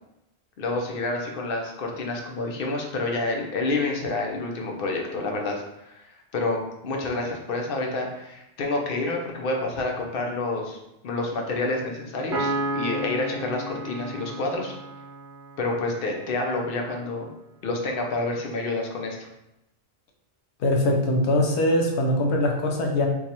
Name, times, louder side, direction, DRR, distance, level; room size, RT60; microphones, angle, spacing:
voice 1, 0.6-6.0 6.3-10.8 11.0-14.7 15.6-17.3 17.6-19.3, left 2 dB, 60° left, 1 dB, 0.8 m, -28 dB
Piano, 12.3-15.9, right 1 dB, 80° right, 1.0 m, -32 dB
voice 2, 20.6-23.1, left 1 dB, 85° left, 1 dB, 1.0 m, -22 dB
4.6 x 2.4 x 2.8 m, 0.88 s
omnidirectional pair, 1.1 m